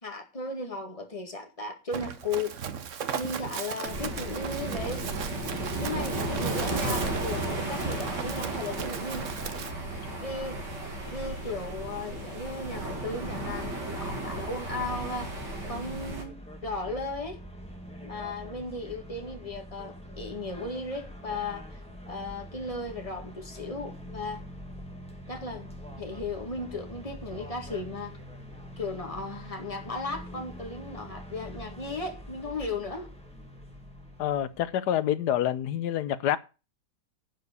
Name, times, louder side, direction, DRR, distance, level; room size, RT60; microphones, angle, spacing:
voice 1, 0.0-2.5 3.1-5.1 5.8-9.3 10.2-10.6 11.0-15.3 15.7-17.4 18.0-21.8 22.1-24.4 25.3-28.1 28.8-33.1, left 3 dB, 20° left, 2.1 m, -36 dB
Run, 1.9-9.7, right 8 dB, 55° right, 1.1 m, -37 dB
sound 1, 3.8-16.2, right 2 dB, 80° right, 2.8 m, -34 dB
sound 2, 14.8-34.7, equal, 5° left, 1.9 m, -44 dB
voice 2, 34.2-36.4, left 11 dB, 75° left, 1.3 m, -27 dB
11.0 x 4.8 x 8.1 m
omnidirectional pair, 1.8 m